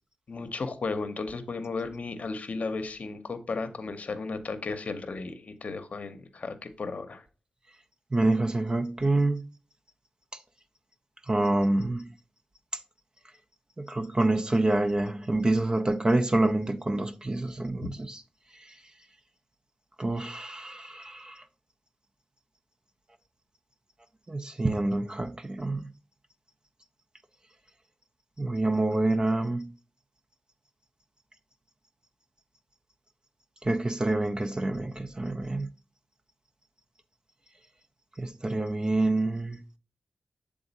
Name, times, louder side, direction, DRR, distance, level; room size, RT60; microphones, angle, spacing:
voice 1, 0.3-7.2 17.8-17.9, left 3 dB, 60° left, 0.7 m, -34 dB
voice 2, 8.1-9.4 11.3-12.1 13.8-18.2 20.0-21.4 24.3-25.9 28.4-29.7 33.6-35.7 38.2-39.6, right 2 dB, 30° right, 0.5 m, -27 dB
7.0 x 3.7 x 4.0 m
cardioid pair, 60°, 3 cm